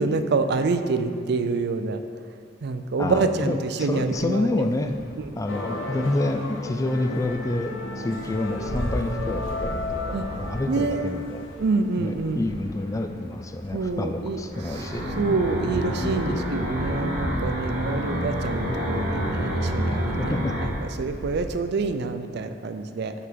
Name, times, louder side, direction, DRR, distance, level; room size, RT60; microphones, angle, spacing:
voice 1, 0.0-2.0 2.6-4.5 5.2-5.3 10.1-10.3 10.7-11.1 11.6-12.5 13.7-14.4 15.2-20.4 20.8-23.1, right 4 dB, 60° right, 9 dB, 0.4 m, -26 dB
voice 2, 3.0-4.9 5.4-11.4 11.9-15.0 20.2-20.6, left 2 dB, 15° left, 7 dB, 0.3 m, -28 dB
sound 1, 3.7-21.5, equal, 55° left, 1.8 m, -40 dB
sound 2, 5.5-12.0, left 3 dB, 85° left, 0.8 m, -34 dB
sound 3, 14.5-20.7, equal, 40° right, 2.0 m, -28 dB
6.5 x 5.6 x 5.2 m, 2.2 s
head